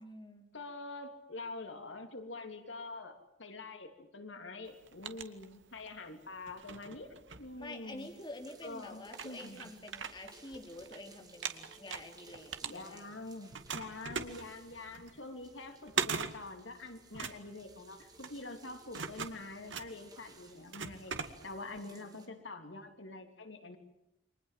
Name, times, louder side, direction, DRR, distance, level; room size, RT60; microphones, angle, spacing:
voice 1, 0.0-0.4 7.6-13.1 21.8-22.4, left 2 dB, 25° left, 3 dB, 3.5 m, -48 dB
voice 2, 0.5-8.1 8.6-9.7 12.6-23.8, left 2 dB, 90° left, 6 dB, 3.3 m, -46 dB
sound 1, 4.7-6.0 6.4-8.1 8.7-8.8 9.1-11.0 11.3-13.2 13.5-21.8, right 6 dB, 85° right, 2.2 m, -41 dB
sound 2, 8.0-22.3, right 3 dB, 20° right, 3.9 m, -59 dB
29.5 x 24.5 x 7.7 m, 0.85 s
head